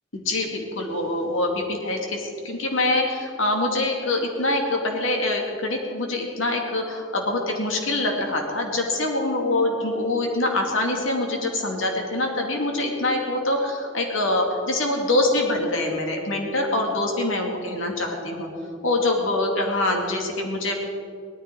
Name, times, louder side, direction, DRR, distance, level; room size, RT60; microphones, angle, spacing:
voice 1, 0.1-18.5 18.8-20.7, left 2 dB, 80° left, 1 dB, 2.4 m, -24 dB
18.0 x 13.5 x 4.6 m, 2.4 s
head